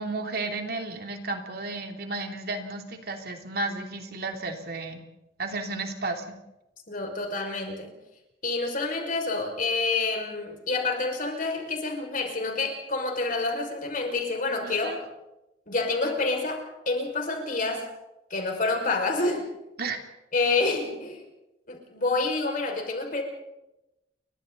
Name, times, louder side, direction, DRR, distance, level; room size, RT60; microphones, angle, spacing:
voice 1, 0.0-5.0 5.4-6.2 14.6-15.0 19.8-20.0, right 3 dB, 55° right, 4 dB, 3.0 m, -33 dB
voice 2, 6.9-8.0 8.4-15.0 15.7-17.9 18.3-19.5 20.3-21.2 21.7-23.2, left 3 dB, 45° left, 2 dB, 5.9 m, -28 dB
30.0 x 24.0 x 4.1 m, 0.91 s
head